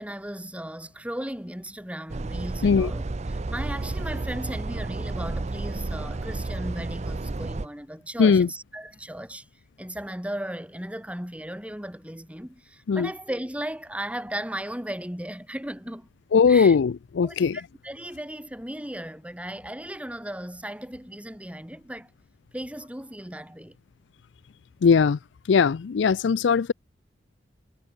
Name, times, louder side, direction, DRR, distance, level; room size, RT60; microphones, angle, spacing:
voice 1, 0.0-9.5 9.8-16.1 16.5-16.8 17.2-22.1 22.5-23.8, right 1 dB, 5° right, 3.1 m, -36 dB
sound 1, 2.1-7.7, right 2 dB, 40° right, 0.6 m, -31 dB
voice 2, 16.3-17.6 24.8-25.2 25.5-26.7, left 5 dB, 80° left, 0.4 m, -19 dB
head